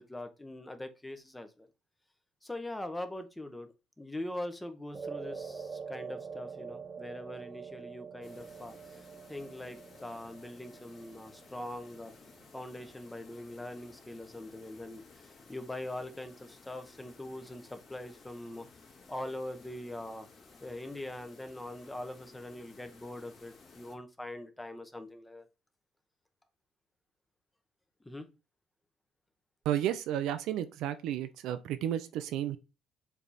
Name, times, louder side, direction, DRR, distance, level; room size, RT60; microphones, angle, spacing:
voice 1, 0.0-1.7 2.4-3.7 4.0-12.1 12.5-18.7 19.1-20.3 20.6-25.5 28.0-28.3, left 1 dB, 10° left, 0.9 m, -42 dB
sound 1, 4.9-13.4, right 6 dB, 25° right, 0.8 m, -45 dB
sound 2, 8.2-24.0, left 4 dB, 40° left, 2.2 m, -57 dB
voice 2, 29.6-32.6, right 11 dB, 75° right, 0.7 m, -32 dB
7.3 x 3.5 x 4.2 m
cardioid pair, 135°, 0 cm